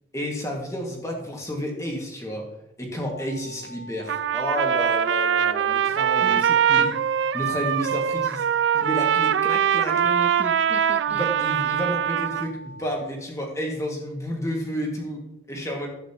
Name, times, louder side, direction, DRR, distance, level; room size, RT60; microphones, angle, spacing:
voice 1, 0.1-2.5 2.8-6.5 6.7-7.0 7.3-8.5 8.7-10.0 11.1-15.2 15.5-15.9, equal, 15° left, 0 dB, 1.9 m, -31 dB
sound 1, 3.1-13.1, equal, 75° left, 1.2 m, -44 dB
Trumpet, 4.1-12.5, right 8 dB, 85° right, 0.3 m, -22 dB
voice 2, 6.2-6.9 10.0-11.3, right 1 dB, 10° right, 5 dB, 0.4 m, -37 dB
12.0 x 9.0 x 2.9 m, 0.90 s
head